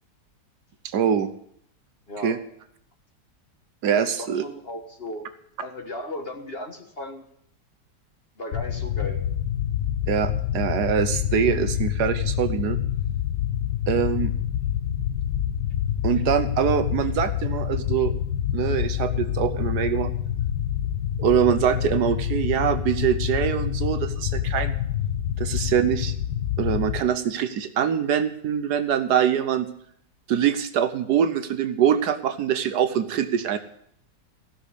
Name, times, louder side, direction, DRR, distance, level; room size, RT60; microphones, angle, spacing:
voice 1, 0.8-1.3 2.2-2.4 3.8-4.4 10.1-12.8 13.9-14.3 16.0-18.1 18.5-20.1 21.2-24.7 25.4-26.1 26.6-29.7 30.3-33.6, right 8 dB, 70° right, 10 dB, 1.3 m, -24 dB
voice 2, 2.1-2.4 3.9-5.3 5.6-7.3 8.4-9.2, left 1 dB, 35° left, 5 dB, 1.4 m, -36 dB
sound 1, 8.5-27.0, left 10 dB, 75° left, 1.5 m, -27 dB
15.5 x 6.3 x 8.2 m, 0.69 s
omnidirectional pair, 1.9 m